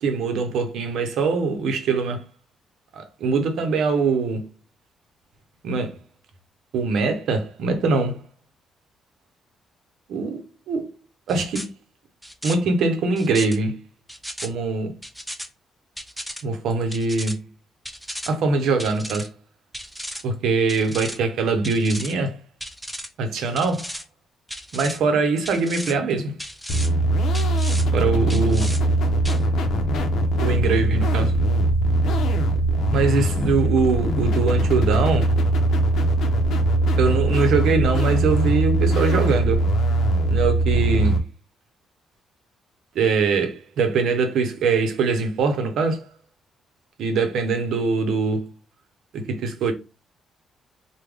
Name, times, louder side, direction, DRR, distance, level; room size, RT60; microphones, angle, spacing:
voice 1, 0.0-2.2 2.9-4.5 5.6-6.0 6.7-8.2 10.1-10.9 11.3-11.7 12.4-13.8 14.4-14.9 16.4-17.4 18.3-19.3 20.2-22.4 23.2-23.9 24.7-26.4 27.9-28.7 30.4-31.4 32.9-35.4 37.0-39.7 40.3-41.3 42.9-46.1 47.0-48.5 49.1-49.7, right 4 dB, 75° right, 0.7 m, -22 dB
sound 1, 11.3-11.7 12.2-12.5 13.2-13.6 14.1-14.5 15.0-15.5 16.0-16.4 16.9-17.3 17.9-18.3 18.8-19.3 19.7-20.2 20.7-21.2 21.6-22.1 22.6-23.1 23.6-24.0 24.5-25.0 25.4-25.9 26.4-26.9 27.3-27.8 28.3-28.8 29.2-29.4, equal, ahead, 0.5 m, -34 dB
sound 2, 26.7-41.2, right 1 dB, 75° left, 0.6 m, -21 dB
3.4 x 2.2 x 3.4 m
cardioid pair, 90°, 0 cm